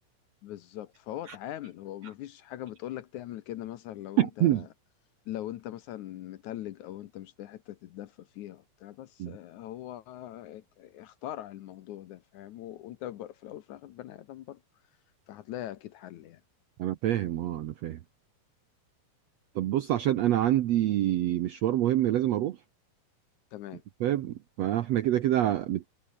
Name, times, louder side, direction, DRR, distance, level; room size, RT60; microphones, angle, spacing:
voice 1, 0.4-4.7 5.3-14.6 15.3-16.4 23.5-23.8, left 13 dB, 70° left, 2.0 m, -41 dB
voice 2, 4.2-4.7 9.2-9.3 16.8-18.0 19.5-22.6 24.0-25.9, right 13 dB, 80° right, 1.5 m, -26 dB
omnidirectional pair, 4.2 m